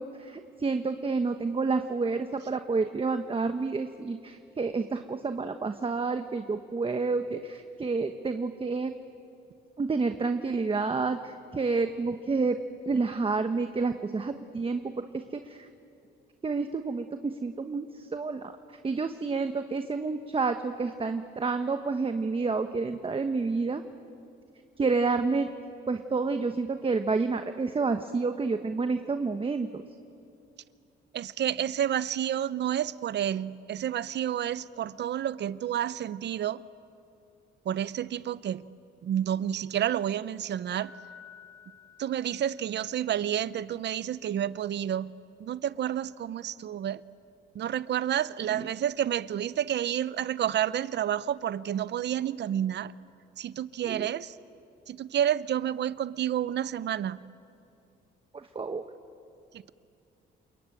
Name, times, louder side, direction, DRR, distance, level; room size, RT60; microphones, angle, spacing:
voice 1, 0.0-8.9 9.8-12.6 12.9-15.7 16.4-18.5 18.8-23.8 24.8-25.5 25.9-29.8 48.6-48.7 53.8-54.1 58.3-58.8, right 4 dB, 25° right, 7 dB, 1.1 m, -29 dB
voice 2, 31.1-36.6 37.7-38.6 39.0-40.9 42.0-45.1 45.4-47.0 47.5-52.9 53.4-54.3 54.9-57.2, right 10 dB, 60° right, 17 dB, 0.8 m, -30 dB
Piano, 40.8-42.9, left 7 dB, 85° left, 6.4 m, -52 dB
28.5 x 22.0 x 9.1 m, 2.6 s
cardioid pair, 90°, 20 cm